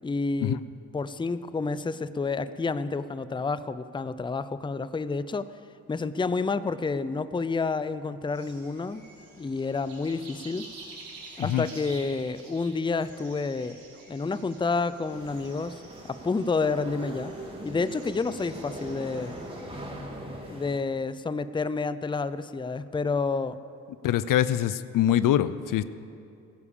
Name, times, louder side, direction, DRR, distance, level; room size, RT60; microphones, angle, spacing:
voice 1, 0.0-0.6 0.9-5.5 5.9-9.0 9.4-10.7 11.4-13.8 14.1-15.8 16.1-17.3 17.6-19.4 20.5-23.6, left 4 dB, 15° left, 14 dB, 0.6 m, -29 dB
sound 1, 8.3-19.8, right 3 dB, 70° right, 3.5 m, -49 dB
sound 2, 15.1-20.8, right 1 dB, 15° right, 3.0 m, -41 dB
voice 2, 24.0-25.8, left 11 dB, 60° left, 15 dB, 0.6 m, -24 dB
16.0 x 9.9 x 7.1 m, 2.5 s
supercardioid pair, 55°, 36 cm